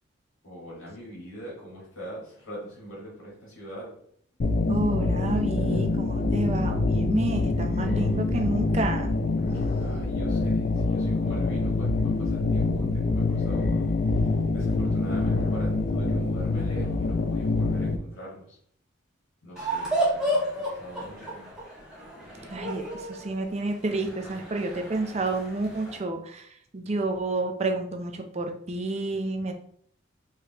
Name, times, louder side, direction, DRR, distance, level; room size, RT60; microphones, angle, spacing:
voice 1, 0.4-4.0 9.8-18.6 19.4-21.5, equal, 85° left, -5 dB, 1.7 m, -42 dB
sound 1, 4.4-18.0, left 3 dB, 45° left, 0.4 m, -25 dB
voice 2, 4.7-9.1 22.5-26.5 26.7-29.5, right 2 dB, 30° right, 5 dB, 0.5 m, -30 dB
sound 2, 19.6-26.0, right 1 dB, 5° right, 1.2 m, -32 dB
4.7 x 3.2 x 2.9 m, 0.62 s
head